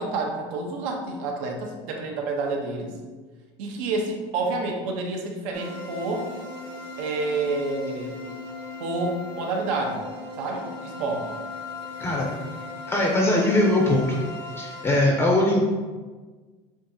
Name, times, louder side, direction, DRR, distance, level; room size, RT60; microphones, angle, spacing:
voice 1, 0.0-3.0 3.6-6.3 7.0-8.2 8.8-10.0 10.4-11.4, right 3 dB, 85° right, 2 dB, 0.8 m, -29 dB
sound 1, 5.5-15.0, left 3 dB, 55° right, 1.4 m, -38 dB
voice 2, 12.9-14.2 14.6-15.6, left 1 dB, 15° left, -2 dB, 0.5 m, -21 dB
7.3 x 2.4 x 2.7 m, 1.4 s
cardioid pair, 155°, 17 cm